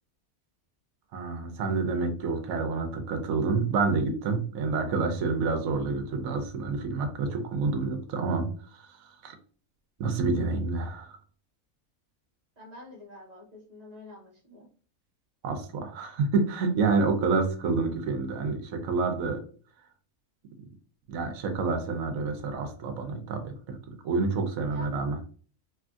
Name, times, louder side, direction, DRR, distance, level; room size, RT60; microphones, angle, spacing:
voice 1, 1.1-9.4 10.0-11.2 15.4-19.4 21.1-25.2, right 4 dB, 85° right, 5 dB, 1.0 m, -28 dB
voice 2, 12.6-14.7 24.7-24.9, left 1 dB, 35° right, -2 dB, 0.8 m, -47 dB
3.1 x 2.4 x 2.3 m, 0.42 s
omnidirectional pair, 1.4 m